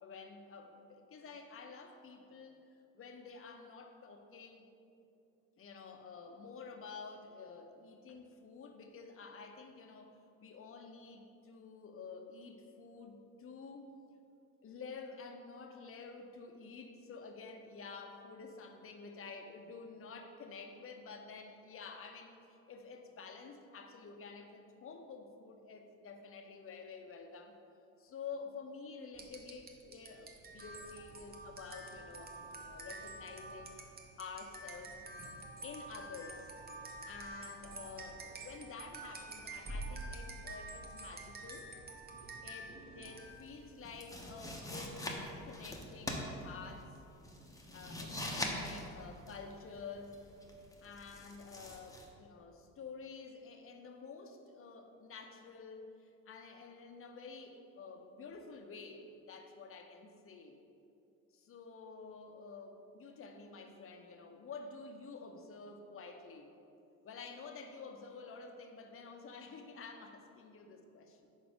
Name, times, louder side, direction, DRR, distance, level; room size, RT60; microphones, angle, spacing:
voice 1, 0.0-2.6 2.9-4.6 5.6-13.9 14.6-27.6 28.0-33.8 34.2-35.0 35.6-36.5 37.1-41.7 42.4-45.2 45.4-46.9 47.7-50.2 50.8-60.6 61.3-66.5 67.0-71.2, left 4 dB, 35° left, 5 dB, 0.8 m, -50 dB
sound 1, 29.1-43.6, right 2 dB, 25° right, 0.8 m, -48 dB
sound 2, 43.2-52.1, left 1 dB, 10° left, 0.8 m, -43 dB
5.1 x 4.1 x 4.9 m, 2.7 s
hypercardioid pair, 65°, 40 cm